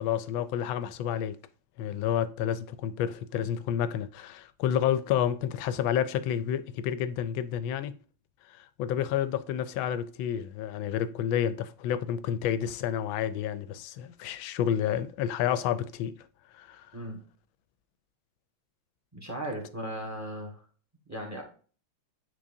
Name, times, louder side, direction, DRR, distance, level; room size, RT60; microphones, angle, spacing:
voice 1, 0.0-1.4 1.8-7.9 8.5-16.1 16.5-16.9, left 10 dB, 75° left, 1.3 m, -30 dB
voice 2, 19.1-20.6 21.0-21.4, right 1 dB, 10° right, 1.2 m, -37 dB
9.3 x 4.0 x 2.6 m
omnidirectional pair, 2.3 m